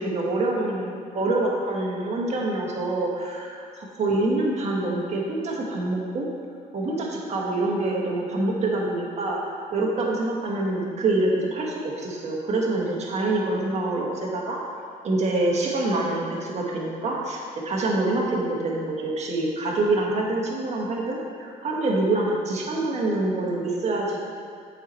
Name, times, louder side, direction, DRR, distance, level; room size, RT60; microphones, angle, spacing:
voice 1, 0.0-6.3 6.7-14.6 15.0-24.2, right 2 dB, 40° right, -2 dB, 1.4 m, -26 dB
8.0 x 4.4 x 4.3 m, 2.2 s
cardioid pair, 110°, 17 cm